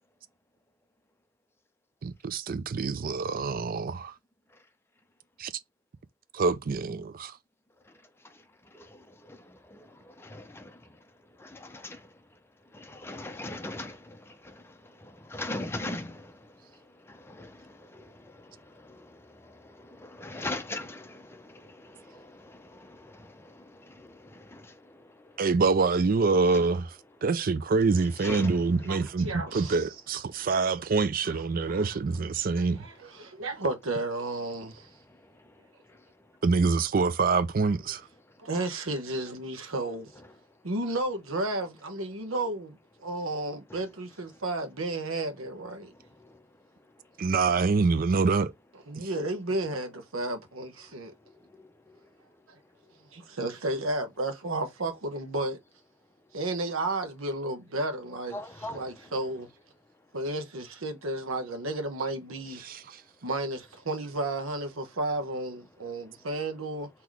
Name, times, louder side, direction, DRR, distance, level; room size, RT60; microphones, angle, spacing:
voice 1, 2.0-4.1 5.4-5.5 6.3-7.4 25.4-26.9 27.2-32.8 36.4-38.0 47.2-48.5 49.0-49.1 62.6-63.0, right 4 dB, 45° right, 0.4 m, -26 dB
voice 2, 10.3-10.6 11.8-12.0 13.0-14.0 15.3-16.2 17.4-17.5 20.2-21.0 28.2-28.5 58.3-58.8, left 2 dB, 10° left, 0.6 m, -35 dB
voice 3, 29.2-29.9 31.2-31.9 32.6-34.9 38.4-40.1 40.6-45.9 48.9-51.1 52.5-52.6 53.1-55.6 56.3-59.5 60.1-62.7 63.2-66.9, right 2 dB, 85° right, 1.1 m, -33 dB
3.9 x 2.9 x 4.6 m
head